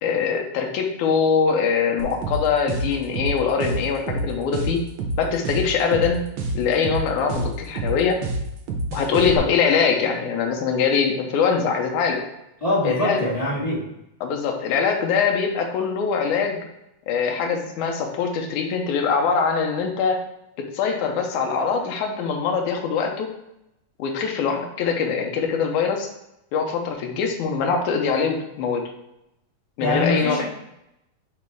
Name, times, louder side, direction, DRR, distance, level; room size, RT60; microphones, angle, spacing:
voice 1, 0.0-4.8 5.2-6.2 6.5-8.2 8.9-12.2 12.8-13.2 14.2-16.6 17.1-20.2 20.7-23.3 24.0-26.1 26.5-28.8 29.8-30.4, left 6 dB, 85° left, 2 dB, 2.3 m, -23 dB
sound 1, 2.0-9.4, right 2 dB, 85° right, 1.1 m, -27 dB
voice 2, 12.6-13.8 29.8-30.4, left 1 dB, 15° left, -7 dB, 1.5 m, -23 dB
8.5 x 3.2 x 3.5 m, 0.84 s
omnidirectional pair, 3.4 m